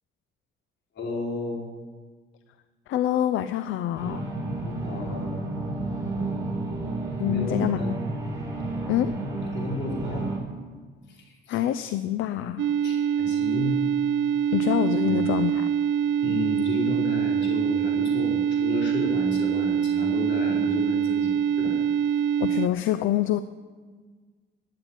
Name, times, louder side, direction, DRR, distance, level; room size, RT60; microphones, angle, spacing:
voice 1, 0.9-1.7 4.6-5.4 7.3-7.9 9.5-10.3 11.1-11.6 12.8-13.8 15.0-15.3 16.2-21.8, left 3 dB, 65° left, -1 dB, 4.5 m, -32 dB
voice 2, 2.9-4.3 7.2-7.9 8.9-9.1 11.5-12.7 14.5-15.7 22.4-23.4, left 12 dB, 85° left, 12 dB, 0.6 m, -26 dB
sound 1, 4.0-10.4, right 2 dB, 15° right, 5.5 m, -31 dB
sound 2, 12.6-22.7, right 8 dB, 70° right, 0.7 m, -24 dB
13.0 x 9.7 x 8.9 m, 1.5 s
cardioid pair, 90°, 20 cm